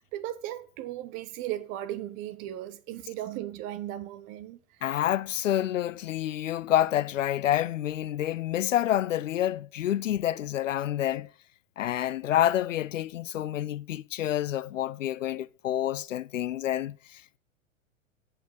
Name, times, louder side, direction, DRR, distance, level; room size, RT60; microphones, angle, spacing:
voice 1, 0.1-4.6, right 13 dB, 20° right, 0.4 m, -36 dB
voice 2, 4.8-11.3 11.8-17.4, left 12 dB, 70° left, 0.5 m, -28 dB
9.3 x 5.7 x 6.5 m
figure-of-eight pair, 95°, 40 cm